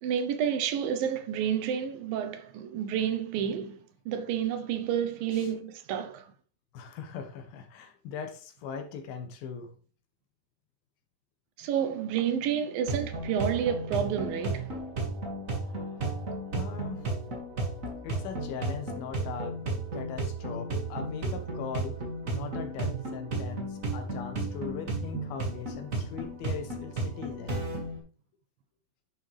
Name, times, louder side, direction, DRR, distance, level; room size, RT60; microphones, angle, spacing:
voice 1, 0.0-6.3 11.6-14.7, right 8 dB, 75° right, 2.6 m, -30 dB
voice 2, 6.7-9.7 15.6-16.2 16.5-17.1 18.0-19.6 19.9-22.0 22.3-27.6, left 6 dB, 80° left, 3.1 m, -40 dB
sound 1, 12.9-28.0, right 2 dB, 30° right, 1.9 m, -34 dB
11.0 x 6.6 x 3.4 m
omnidirectional pair, 4.2 m